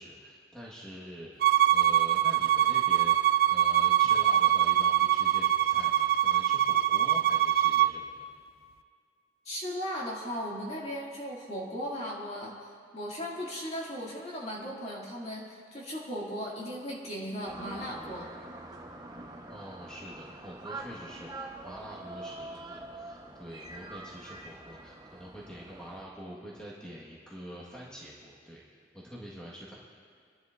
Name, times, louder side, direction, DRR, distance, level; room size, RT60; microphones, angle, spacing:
voice 1, 0.0-8.3 19.5-29.7, equal, 5° left, -6 dB, 1.5 m, -46 dB
Bowed string instrument, 1.4-7.9, right 12 dB, 55° right, 0.3 m, -24 dB
voice 2, 9.4-18.3, equal, 35° left, -4 dB, 2.3 m, -37 dB
sound 1, 17.5-26.0, right 2 dB, 20° right, 1.0 m, -45 dB
29.5 x 11.0 x 2.6 m, 2.1 s
head